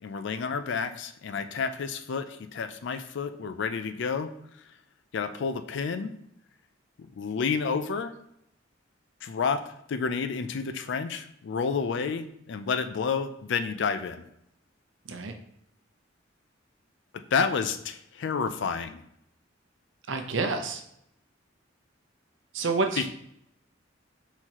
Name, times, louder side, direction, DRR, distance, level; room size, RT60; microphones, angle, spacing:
voice 1, 0.0-4.3 5.1-6.1 7.2-8.1 9.2-9.6 9.9-14.2 17.3-19.0, left 5 dB, 65° left, 10 dB, 0.4 m, -30 dB
voice 2, 20.1-20.8 22.5-23.0, right 3 dB, 70° right, 5 dB, 0.6 m, -28 dB
4.4 x 3.9 x 2.9 m, 0.76 s
head